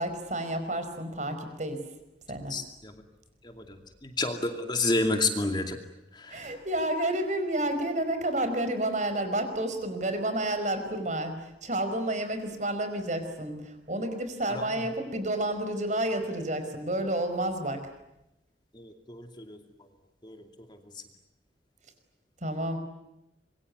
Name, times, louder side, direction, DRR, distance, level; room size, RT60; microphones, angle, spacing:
voice 1, 0.0-1.8 2.3-2.5 6.3-17.9 22.4-22.8, right 1 dB, 40° right, 8 dB, 5.0 m, -30 dB
voice 2, 4.2-5.8 19.1-19.2 20.2-20.4, left 2 dB, 25° left, 5 dB, 2.5 m, -27 dB
26.5 x 23.5 x 9.7 m, 0.88 s
head